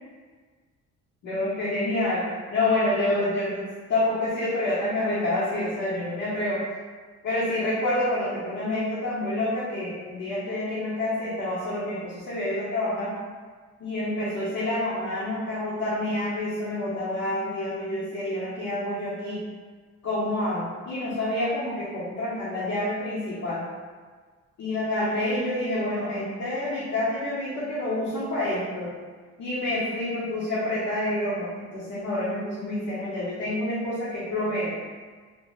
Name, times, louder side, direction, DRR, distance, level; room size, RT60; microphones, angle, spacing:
voice 1, 1.2-6.6 7.2-13.2 13.8-19.4 20.0-23.7 24.6-28.9 29.4-34.7, left 1 dB, 65° left, -9 dB, 0.8 m, -28 dB
2.9 x 2.0 x 3.0 m, 1.5 s
cardioid pair, 90°, 30 cm